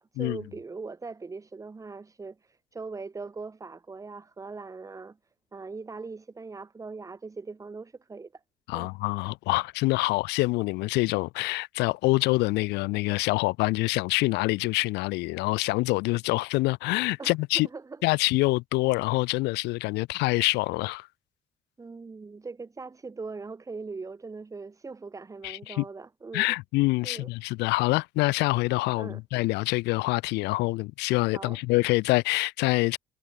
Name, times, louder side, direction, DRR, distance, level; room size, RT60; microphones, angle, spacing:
voice 1, 0.0-5.2 5.5-8.4 8.7-8.9 10.1-10.2 17.2-18.0 21.8-26.5 27.0-27.3 28.9-29.2 31.3-31.6, right 4 dB, 20° right, 1.0 m, -40 dB
voice 2, 8.7-17.7 18.0-21.1 25.4-25.8 26.3-33.0, left 22 dB, 85° left, 0.4 m, -26 dB
cardioid pair, 110°, 17 cm